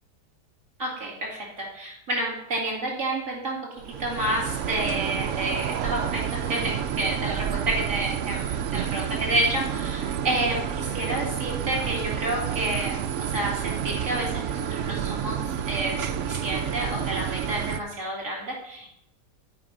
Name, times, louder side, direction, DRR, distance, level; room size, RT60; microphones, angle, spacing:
voice 1, 0.8-18.9, right 1 dB, 50° right, -2 dB, 3.0 m, -30 dB
sound 1, 3.8-17.8, right 9 dB, 65° right, 0.7 m, -29 dB
12.0 x 5.4 x 5.3 m, 0.78 s
omnidirectional pair, 1.8 m